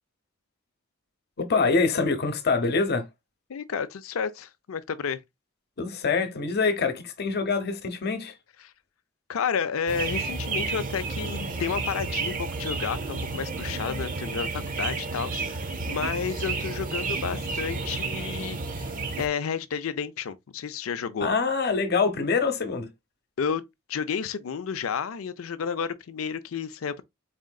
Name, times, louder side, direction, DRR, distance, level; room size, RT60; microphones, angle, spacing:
voice 1, 1.4-3.1 5.8-8.3 21.2-22.9, left 4 dB, 55° left, 0.8 m, -25 dB
voice 2, 3.5-5.2 9.3-18.9 19.2-21.3 23.4-23.6 23.9-27.0, left 6 dB, 85° left, 0.5 m, -31 dB
sound 1, 9.9-19.3, right 3 dB, 40° right, 0.7 m, -31 dB
4.2 x 3.7 x 2.2 m
head